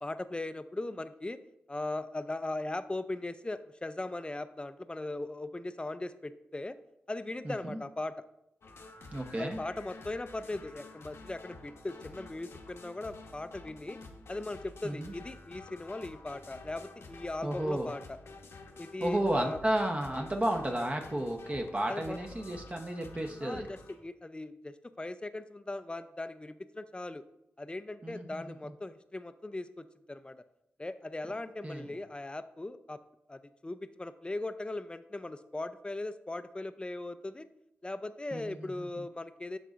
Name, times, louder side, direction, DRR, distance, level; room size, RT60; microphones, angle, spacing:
voice 1, 0.0-1.4 1.7-6.8 7.1-8.1 9.4-14.0 14.3-18.2 18.8-19.6 21.9-22.2 23.4-27.2 27.6-30.4 30.8-33.0 33.3-37.5 37.8-39.6, left 2 dB, 20° left, 11 dB, 0.5 m, -39 dB
voice 2, 7.4-7.8 9.1-9.6 14.8-15.1 17.4-17.9 19.0-23.7 28.0-28.7 31.6-32.0 38.3-39.0, right 1 dB, 30° right, 3 dB, 0.9 m, -33 dB
sound 1, 8.6-23.9, left 3 dB, 70° left, 0.9 m, -50 dB
11.5 x 4.0 x 2.5 m, 0.82 s
cardioid pair, 55°, 5 cm